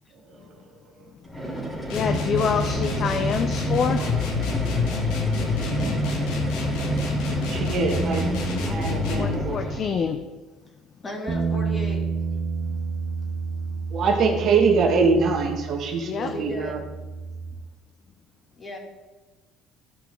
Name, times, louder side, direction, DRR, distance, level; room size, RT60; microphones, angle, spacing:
sound 1, 1.2-10.0, right 1 dB, 5° left, 3.3 m, -31 dB
sound 2, 1.9-9.4, left 2 dB, 85° left, 1.9 m, -27 dB
voice 1, 1.9-4.1 9.1-10.2 16.0-16.3, left 6 dB, 45° left, 8 dB, 0.6 m, -26 dB
voice 2, 7.3-8.3 8.7-9.6 13.9-16.8, right 4 dB, 55° right, 2 dB, 1.7 m, -23 dB
voice 3, 11.0-12.0 16.2-16.8 18.6-18.8, equal, 25° left, 0 dB, 2.7 m, -34 dB
sound 3, 11.3-17.5, right 5 dB, 30° right, 1.5 m, -30 dB
15.0 x 5.7 x 3.8 m, 1.2 s
cardioid pair, 110°, 0 cm